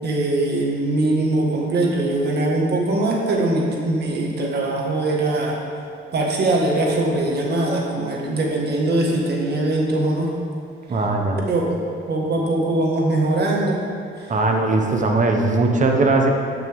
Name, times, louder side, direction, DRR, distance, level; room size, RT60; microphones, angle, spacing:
voice 1, 0.0-5.6 6.1-10.3 11.5-11.7 12.1-13.8 14.8-14.9, right 2 dB, 55° right, -1 dB, 1.8 m, -21 dB
voice 2, 10.9-11.4 14.3-16.3, right 3 dB, 40° right, 2 dB, 1.2 m, -19 dB
13.0 x 5.9 x 3.7 m, 2.4 s
cardioid pair, 90°, 20 cm